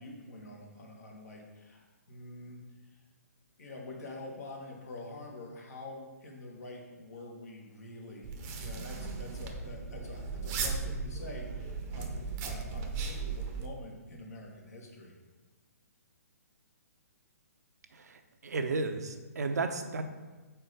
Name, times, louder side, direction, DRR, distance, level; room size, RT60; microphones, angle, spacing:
voice 1, 0.0-2.6 2.9-3.0 3.6-15.2, left 2 dB, 70° left, 0 dB, 1.5 m, -46 dB
sound 1, 8.2-13.7, right 4 dB, 25° right, 0.7 m, -37 dB
voice 2, 17.9-20.0, right 3 dB, 75° right, 7 dB, 0.7 m, -33 dB
4.5 x 4.3 x 5.2 m, 1.2 s
hypercardioid pair, 135°, 9 cm